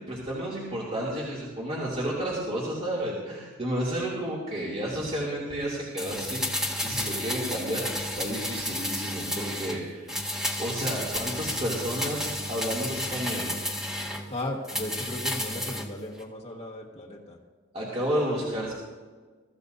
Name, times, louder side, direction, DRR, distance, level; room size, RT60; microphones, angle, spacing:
voice 1, 0.0-6.4 6.8-10.1 10.6-13.5 17.7-18.7, equal, 35° right, -6 dB, 2.8 m, -31 dB
sound 1, 6.0-9.8 10.1-14.2 14.6-15.9 16.2-16.3, left 1 dB, 5° right, 1.7 m, -32 dB
voice 2, 14.3-17.4, left 1 dB, 35° left, -2 dB, 1.5 m, -36 dB
23.0 x 14.0 x 2.7 m, 1.4 s
head